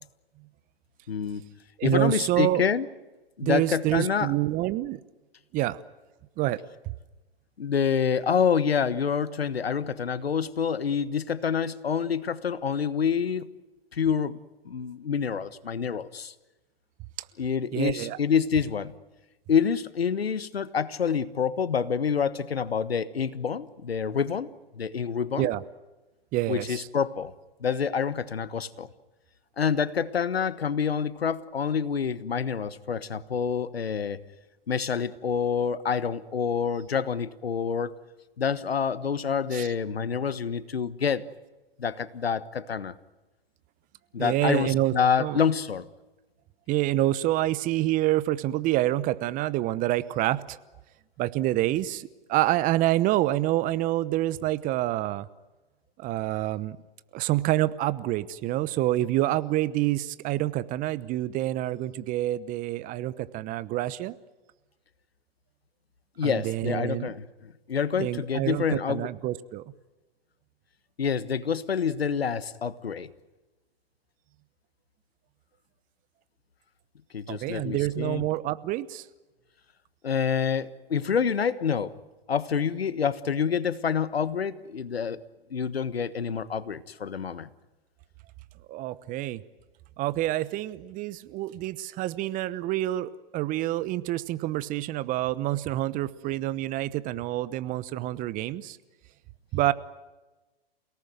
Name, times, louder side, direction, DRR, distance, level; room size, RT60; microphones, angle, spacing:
voice 1, 1.1-1.4 1.8-2.9 3.4-4.3 7.6-13.5 13.9-14.4 14.6-16.3 17.4-18.9 19.5-24.5 24.8-25.5 26.5-27.3 27.6-28.9 29.6-34.2 34.7-37.9 38.4-41.2 41.8-42.9 44.1-45.9 66.2-69.1 71.0-73.1 77.1-78.2 80.0-82.0 82.3-85.2 85.5-87.5, left 7 dB, 85° left, 16 dB, 1.4 m, -27 dB
voice 2, 1.8-2.6 3.4-5.0 5.5-5.8 6.4-6.6 17.7-18.2 25.4-25.6 26.3-26.9 39.5-39.7 44.2-45.4 46.7-50.6 51.2-55.3 56.0-56.8 57.1-64.2 66.2-67.1 68.0-69.7 77.3-79.0 88.7-89.4 90.0-98.8 99.5-99.7, right 15 dB, 25° right, 16 dB, 0.9 m, -27 dB
29.0 x 18.0 x 9.3 m, 1.1 s
hypercardioid pair, 120°, 30 cm